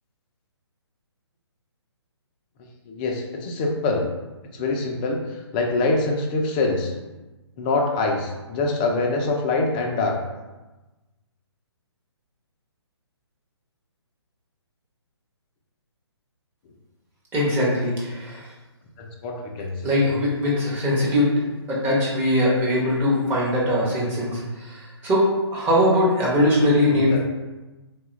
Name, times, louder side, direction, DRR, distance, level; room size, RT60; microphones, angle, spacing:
voice 1, 2.9-4.1 4.5-5.2 5.5-6.9 7.6-10.2 19.0-19.7 26.9-27.2, left 3 dB, 20° left, 1 dB, 0.3 m, -24 dB
voice 2, 17.3-18.4 19.8-21.3 21.7-27.2, left 1 dB, 15° right, -6 dB, 0.8 m, -21 dB
3.7 x 2.3 x 3.1 m, 1.1 s
figure-of-eight pair, 135°, 14 cm